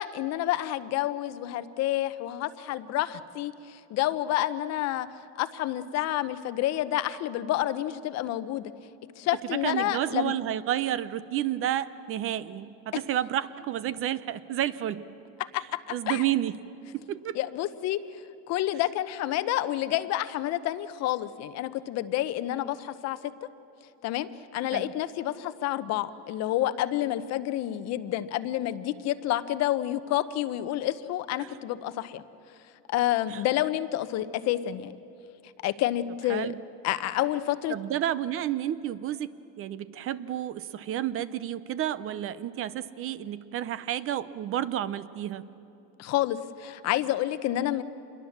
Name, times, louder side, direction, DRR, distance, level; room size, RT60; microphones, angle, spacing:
voice 1, 0.0-5.1 5.4-8.7 9.2-10.3 15.5-16.2 17.3-18.0 18.5-23.3 24.0-24.3 24.5-32.2 32.9-34.9 35.6-36.5 36.8-37.8 46.0-47.8, left 13 dB, 55° left, 13 dB, 0.9 m, -29 dB
voice 2, 9.5-15.0 15.9-16.6 16.9-17.4 24.7-24.9 31.4-31.5 33.3-33.4 36.3-36.6 37.7-39.3 39.6-45.4, right 12 dB, 45° right, 15 dB, 0.7 m, -30 dB
27.0 x 22.0 x 7.3 m, 2.9 s
cardioid pair, 140°, 32 cm